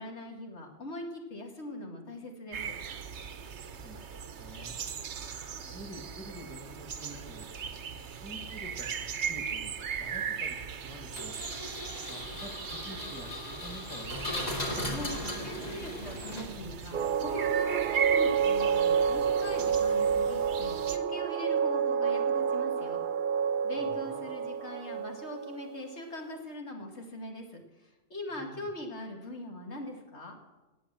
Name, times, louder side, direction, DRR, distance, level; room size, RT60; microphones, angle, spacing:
voice 1, 0.0-2.8 14.9-23.0 23.6-30.4, left 1 dB, 75° left, 2 dB, 2.4 m, -41 dB
sound 1, 2.5-21.0, right 7 dB, 85° right, 1.2 m, -39 dB
voice 2, 3.8-4.7 5.6-7.5 8.1-9.7 10.0-11.3 12.1-14.5 23.8-24.3 28.3-28.7, equal, 5° left, 3 dB, 2.2 m, -48 dB
Engine, 11.1-16.8, left 1 dB, 35° left, 2.7 m, -37 dB
sound 2, 16.9-25.9, right 7 dB, 55° right, 0.8 m, -29 dB
17.5 x 8.5 x 7.5 m, 1.1 s
omnidirectional pair, 1.1 m